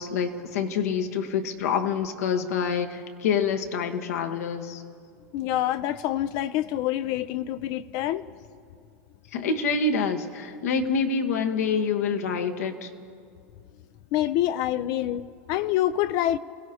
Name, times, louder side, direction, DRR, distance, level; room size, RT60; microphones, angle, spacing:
voice 1, 0.0-4.8 9.3-12.9, left 5 dB, 80° left, 1.3 m, -26 dB
voice 2, 5.3-8.2 14.1-16.4, left 13 dB, 55° left, 0.4 m, -26 dB
28.0 x 17.0 x 2.8 m
hypercardioid pair, 110°, 8 cm